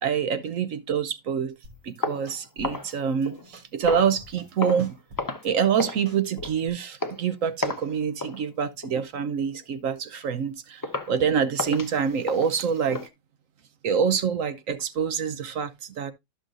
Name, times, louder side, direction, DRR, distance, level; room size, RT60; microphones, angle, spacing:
voice 1, 0.0-1.6 1.8-4.9 5.4-13.1 13.8-16.1, right 7 dB, 60° right, 0.9 m, -26 dB
sound 1, 1.6-2.0 2.3-3.0 3.2-4.5 4.8-6.7, left 2 dB, 90° right, 3.6 m, -48 dB
sound 2, 2.0-3.5 3.9-4.2 4.6-4.9 5.2-5.5 5.8-6.0 6.4-6.6 7.0-7.2 7.6-7.9 8.2-8.4 8.8-9.1 9.5-9.6 10.1-10.2 10.8-11.2 11.6-13.1, left 2 dB, 25° left, 0.4 m, -33 dB
12.5 x 6.3 x 2.5 m
omnidirectional pair, 1.9 m